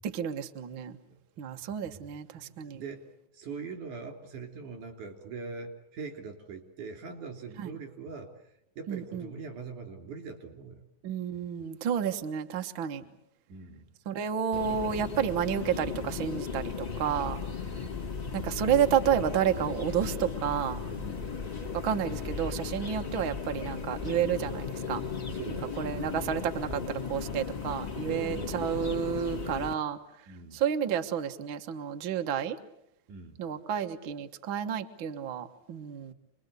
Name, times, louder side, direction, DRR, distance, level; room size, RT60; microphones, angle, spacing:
voice 1, 0.0-1.0 1.4-2.8 7.6-7.7 8.9-9.3 11.0-13.0 14.1-17.4 18.3-20.8 21.7-25.0 25.8-30.0 30.5-32.6 33.4-36.1, right 9 dB, 50° right, 6 dB, 1.7 m, -30 dB
voice 2, 2.3-3.1 3.3-10.8 13.0-13.2 13.5-13.9 17.5-18.0 20.9-21.4 25.2-26.8 28.1-29.0 30.3-30.6 33.1-33.4, right 5 dB, 85° right, 4 dB, 4.8 m, -43 dB
sound 1, 14.5-29.7, left 5 dB, 60° left, 0.4 m, -36 dB
27.5 x 21.5 x 8.2 m, 0.80 s
omnidirectional pair, 3.4 m